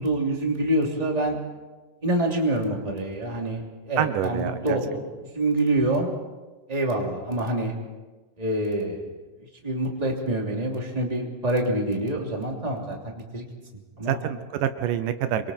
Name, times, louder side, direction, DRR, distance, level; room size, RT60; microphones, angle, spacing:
voice 1, 0.0-1.4 2.0-3.6 3.9-6.1 6.7-7.7 8.4-9.1 9.6-13.0 13.3-13.5 14.0-14.2, right 1 dB, 10° right, 0 dB, 2.7 m, -26 dB
voice 2, 4.0-4.8 14.1-15.5, right 10 dB, 80° right, 10 dB, 2.4 m, -27 dB
27.5 x 23.0 x 4.4 m, 1.2 s
omnidirectional pair, 3.8 m